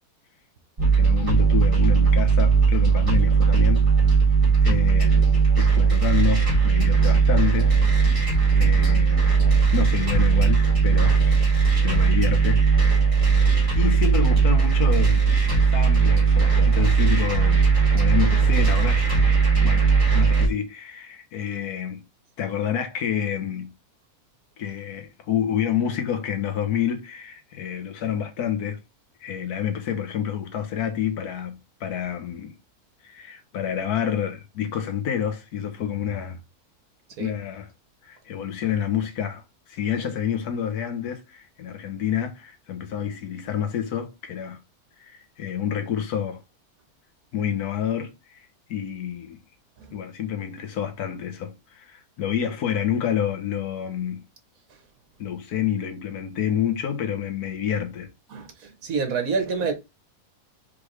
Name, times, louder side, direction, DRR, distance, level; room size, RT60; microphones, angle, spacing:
sound 1, 0.8-20.5, right 5 dB, 20° right, 2.1 m, -18 dB
voice 1, 0.9-3.9 4.6-5.2 5.6-8.3 8.5-9.3 9.7-11.4 11.8-13.1 13.8-19.3 19.6-22.0 22.4-23.7 24.6-28.8 29.2-32.5 33.0-36.4 37.2-37.7 38.0-39.4 39.7-44.6 45.0-46.4 47.3-48.4 48.7-49.4 49.9-54.2 55.2-58.1, left 9 dB, 80° left, 1.4 m, -28 dB
voice 2, 58.3-59.7, right 5 dB, 65° right, 1.4 m, -27 dB
4.9 x 3.3 x 3.2 m
omnidirectional pair, 1.6 m